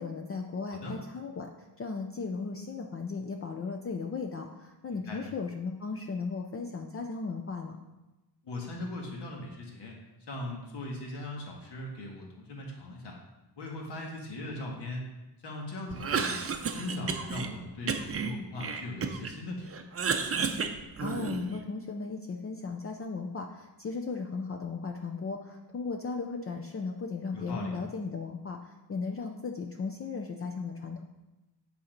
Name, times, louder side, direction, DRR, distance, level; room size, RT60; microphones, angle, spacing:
voice 1, 0.0-7.8 21.0-31.0, left 4 dB, 30° left, 3 dB, 0.5 m, -36 dB
voice 2, 8.4-10.0 10.3-13.2 13.6-15.1 15.4-16.4 16.7-19.9 27.3-27.7, left 2 dB, 65° left, -1 dB, 1.8 m, -39 dB
Cough, 15.9-17.5 17.9-19.4 19.7-21.6, right 5 dB, 35° right, 0.6 m, -32 dB
8.3 x 4.3 x 5.2 m, 1.0 s
wide cardioid pair, 125°, 43 cm